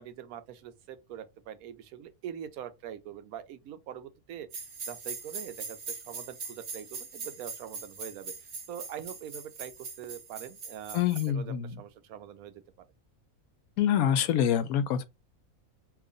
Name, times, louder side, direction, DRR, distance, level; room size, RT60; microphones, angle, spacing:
voice 1, 0.0-11.0 11.3-12.6, right 10 dB, 85° right, 1.1 m, -43 dB
sound 1, 4.5-11.3, right 4 dB, 65° right, 1.4 m, -41 dB
voice 2, 10.9-11.8 13.8-15.0, left 9 dB, 85° left, 1.0 m, -26 dB
2.9 x 2.4 x 3.7 m
omnidirectional pair, 1.5 m